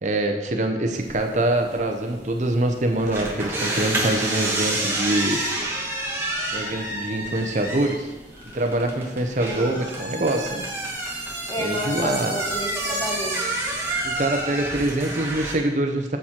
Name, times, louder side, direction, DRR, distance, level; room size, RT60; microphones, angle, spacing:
voice 1, 0.0-5.4 6.5-8.1 8.5-10.6 11.6-12.4 14.0-16.2, right 1 dB, 45° right, 4 dB, 0.7 m, -24 dB
sound 1, 0.9-15.5, right 2 dB, 15° right, 1.3 m, -29 dB
voice 2, 9.5-9.8 11.5-13.5, equal, 20° left, 1 dB, 1.0 m, -31 dB
7.3 x 7.0 x 4.4 m, 1.1 s
head